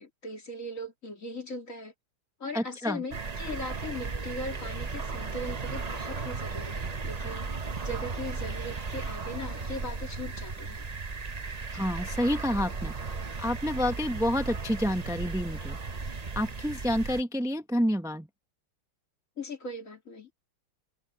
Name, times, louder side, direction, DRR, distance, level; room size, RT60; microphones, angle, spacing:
voice 1, 0.0-1.9 2.4-7.5 7.8-10.9 19.4-20.5, left 1 dB, 35° left, 3.3 m, -39 dB
voice 2, 2.5-3.0 11.7-12.9 13.4-15.8 16.3-18.3, equal, 5° right, 0.4 m, -29 dB
sound 1, 3.1-17.2, right 4 dB, 85° right, 0.3 m, -35 dB
omnidirectional pair, 2.3 m